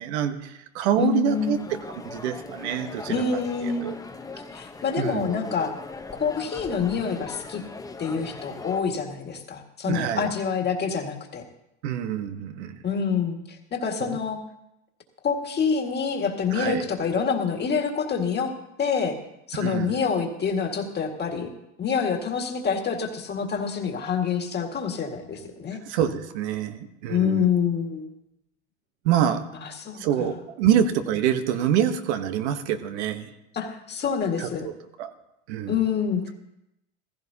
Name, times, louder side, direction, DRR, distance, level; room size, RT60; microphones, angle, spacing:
voice 1, 0.0-1.6 2.0-3.2 3.8-3.9 5.0-5.3 9.8-10.3 11.8-12.8 14.0-14.2 16.5-16.9 19.5-19.9 25.8-27.4 29.0-29.4 29.9-33.3 34.4-34.7 35.0-35.1 35.5-35.8, right 9 dB, 85° right, 9 dB, 1.1 m, -26 dB
voice 2, 1.0-1.7 3.1-4.1 4.5-5.7 6.2-7.6 8.0-11.4 12.8-14.4 15.2-18.5 18.8-19.2 19.5-21.5 21.8-25.8 27.1-28.1 29.6-30.3 33.5-34.7 35.7-36.2, left 6 dB, 30° left, 3 dB, 1.9 m, -27 dB
sound 1, 1.3-8.8, left 3 dB, 10° left, 0.9 m, -40 dB
15.5 x 14.5 x 2.8 m, 0.85 s
supercardioid pair, 110°, 33 cm